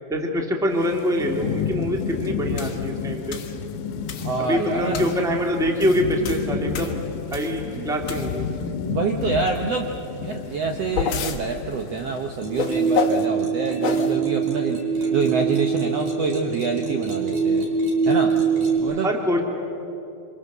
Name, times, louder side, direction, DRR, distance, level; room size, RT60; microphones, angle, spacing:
voice 1, 0.1-3.4 4.4-7.0 7.3-8.5 15.0-15.1 18.8-19.4, equal, ahead, 1 dB, 1.3 m, -24 dB
Thunderstorm / Rain, 0.7-13.0, left 6 dB, 85° left, 2.8 m, -31 dB
sound 1, 2.6-2.8 3.3-3.6 4.1-4.4 4.9-5.2 5.6-7.6 8.0-8.6 10.5-11.4 12.6-13.2 13.8-14.1, left 6 dB, 60° left, 1.3 m, -28 dB
voice 2, 4.2-5.0 7.7-7.9 8.8-9.9 10.2-14.8 15.1-17.7 18.0-18.3 18.8-19.1, right 5 dB, 85° right, 3 dB, 1.3 m, -26 dB
sound 2, 12.4-18.8, right 5 dB, 50° right, 5.0 m, -23 dB
27.0 x 25.5 x 6.8 m, 2.9 s
omnidirectional pair, 4.5 m